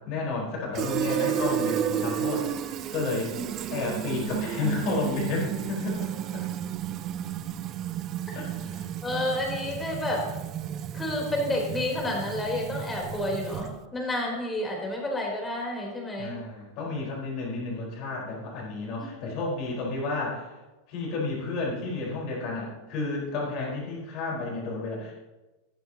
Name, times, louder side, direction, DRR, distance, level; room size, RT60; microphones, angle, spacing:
voice 1, 0.0-3.3 3.7-6.5 8.3-9.2 16.2-20.5 20.9-25.1, left 3 dB, 40° left, -2 dB, 4.4 m, -32 dB
Fill (with liquid), 0.7-13.9, right 10 dB, 35° right, 0.6 m, -32 dB
voice 2, 9.0-10.2 10.9-16.4 19.4-19.5, left 1 dB, 10° left, -1 dB, 3.7 m, -30 dB
14.5 x 12.5 x 2.9 m, 1.1 s
figure-of-eight pair, 90°, 0 cm